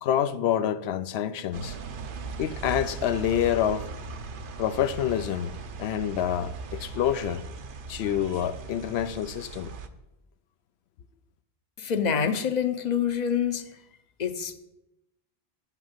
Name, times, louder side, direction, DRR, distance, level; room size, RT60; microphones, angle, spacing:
voice 1, 0.0-1.8 2.4-3.9 4.6-7.4 7.9-9.7, left 10 dB, 80° left, 0.8 m, -27 dB
sound 1, 1.5-9.9, right 4 dB, 60° right, 0.8 m, -39 dB
voice 2, 11.8-13.7 14.2-14.5, left 7 dB, 45° left, 0.7 m, -26 dB
8.2 x 5.8 x 7.3 m
omnidirectional pair, 1.1 m